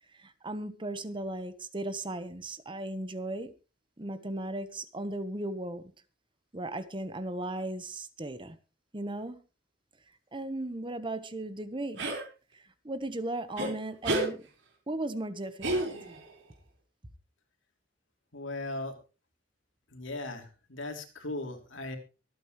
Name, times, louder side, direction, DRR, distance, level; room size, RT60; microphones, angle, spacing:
voice 1, 0.2-3.5 4.0-5.8 6.5-8.6 8.9-9.4 10.3-12.0 12.5-14.5 14.9-15.9, right 1 dB, 25° right, 1.2 m, -36 dB
sound 1, 12.0-12.2 13.6-13.7 14.0-14.3 15.6-16.3, right 1 dB, 70° right, 4.8 m, -30 dB
voice 2, 18.3-18.9 19.9-22.0, left 2 dB, 80° left, 3.2 m, -38 dB
24.0 x 9.3 x 3.2 m
head